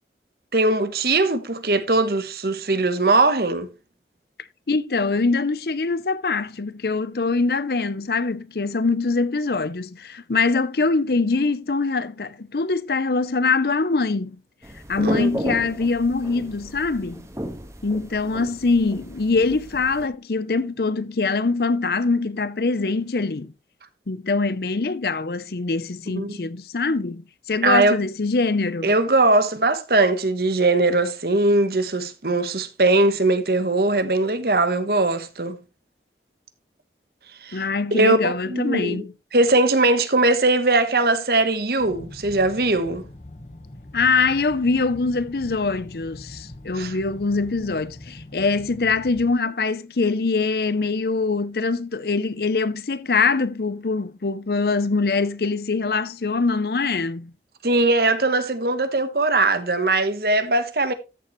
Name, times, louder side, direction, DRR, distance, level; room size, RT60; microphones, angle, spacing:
voice 1, 0.5-3.7 15.0-15.3 26.2-26.5 27.6-27.9 28.8-35.6 37.4-37.6 37.9-39.0 39.3-43.0 46.7-46.9 57.6-60.9, right 2 dB, 60° right, 1.2 m, -20 dB
voice 2, 4.7-14.4 14.9-17.2 17.8-23.5 24.1-27.2 27.5-28.9 37.5-39.1 43.9-57.3, left 4 dB, 60° left, 0.6 m, -23 dB
sound 1, 14.6-20.1, equal, 15° right, 1.5 m, -34 dB
sound 2, 41.8-49.3, left 1 dB, 40° left, 1.2 m, -42 dB
13.5 x 7.0 x 3.1 m
head